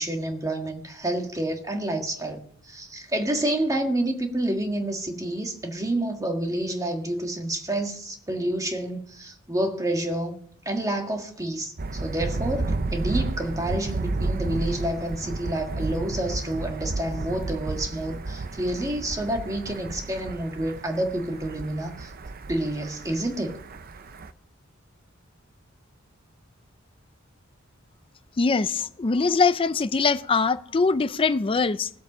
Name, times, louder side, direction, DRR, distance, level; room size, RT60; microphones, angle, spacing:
voice 1, 0.0-10.3 10.6-22.1 22.5-23.6, right 1 dB, 15° right, 1.6 m, -29 dB
Thunder, 11.8-24.3, right 2 dB, 45° right, 0.6 m, -32 dB
voice 2, 28.4-31.9, left 4 dB, 25° left, 0.4 m, -22 dB
17.0 x 8.0 x 6.0 m
head